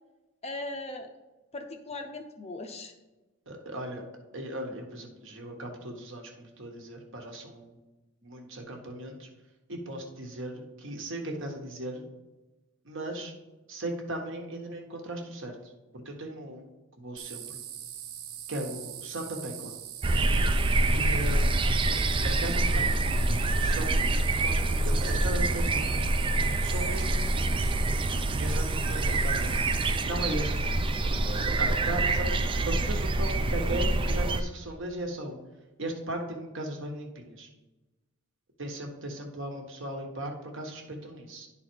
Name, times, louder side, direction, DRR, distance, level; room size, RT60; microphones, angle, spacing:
voice 1, 0.4-1.1 1.5-2.9, left 2 dB, 30° left, 5 dB, 0.6 m, -38 dB
voice 2, 3.5-4.0 4.3-7.8 8.2-9.3 9.7-12.0 12.8-13.3 13.7-16.7 17.0-17.6 18.5-19.7 20.9-21.8 22.2-23.0 23.6-24.0 24.4-26.1 26.6-27.7 28.4-29.6 30.1-30.7 31.4-35.4 35.8-37.5 38.6-41.5, right 1 dB, 60° right, 2 dB, 1.2 m, -37 dB
sound 1, 17.2-30.0, right 10 dB, 75° right, 0.6 m, -42 dB
sound 2, 20.0-34.4, right 2 dB, 25° right, 0.4 m, -26 dB
10.5 x 3.9 x 4.5 m, 1.1 s
head